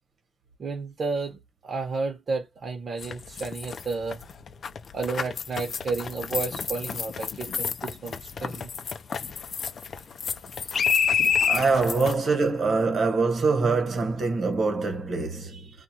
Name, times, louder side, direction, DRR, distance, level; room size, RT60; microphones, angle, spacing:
voice 1, 0.6-4.2 4.9-8.7 11.3-11.6, right 4 dB, 50° right, 0.9 m, -32 dB
sound 1, 3.0-12.1, left 7 dB, 60° left, 0.5 m, -29 dB
voice 2, 11.4-15.7, right 4 dB, 65° right, 1.2 m, -24 dB
2.4 x 2.3 x 2.8 m
cardioid pair, 115°, 0 cm